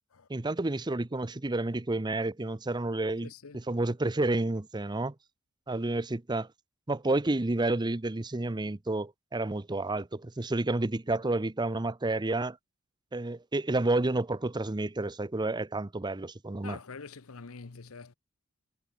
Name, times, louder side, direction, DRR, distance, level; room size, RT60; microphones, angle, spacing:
voice 1, 0.3-5.1 5.7-6.5 6.9-12.6 13.1-16.8, right 2 dB, 20° right, 0.7 m, -30 dB
voice 2, 3.2-3.6 16.6-18.1, left 4 dB, 85° left, 0.9 m, -45 dB
head